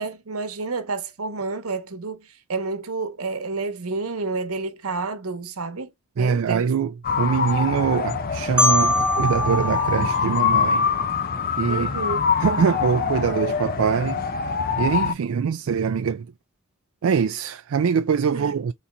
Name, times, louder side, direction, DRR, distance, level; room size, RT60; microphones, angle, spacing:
voice 1, 0.0-6.7 11.7-12.2 18.3-18.4, right 3 dB, 85° right, 1.1 m, -30 dB
voice 2, 6.2-10.9 11.6-11.9 12.4-14.2 14.8-16.3 17.0-18.7, right 6 dB, 70° right, 0.4 m, -23 dB
sound 1, 7.0-15.1, left 6 dB, 45° left, 0.6 m, -24 dB
Marimba xylophone, 8.6-11.4, left 1 dB, 5° right, 0.7 m, -24 dB
4.3 x 3.8 x 2.3 m
head